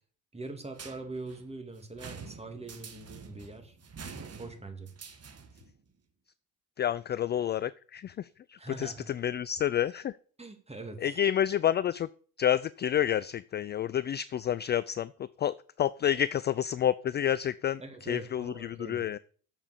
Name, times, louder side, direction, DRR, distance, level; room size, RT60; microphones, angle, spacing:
voice 1, 0.3-3.8 4.4-4.9 8.6-9.1 10.4-11.2 17.8-19.1, right 3 dB, 15° right, 5 dB, 2.7 m, -43 dB
sound 1, 0.7-5.7, right 5 dB, 35° right, 1.8 m, -47 dB
voice 2, 6.8-10.2 11.0-12.1 12.4-19.2, left 10 dB, 25° left, 17 dB, 0.4 m, -29 dB
7.4 x 7.1 x 6.7 m, 0.43 s
hypercardioid pair, 55°, 43 cm